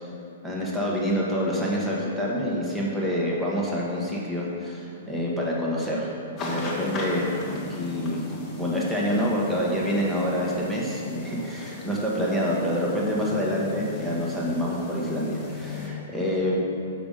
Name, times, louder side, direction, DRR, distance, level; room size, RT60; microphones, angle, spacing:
voice 1, 0.4-6.1 6.4-8.2 8.6-16.5, equal, 5° right, -5 dB, 1.5 m, -27 dB
sound 1, 6.4-15.9, left 3 dB, 20° left, 1.5 m, -37 dB
5.9 x 5.3 x 5.3 m, 2.6 s
hypercardioid pair, 115°, 0 cm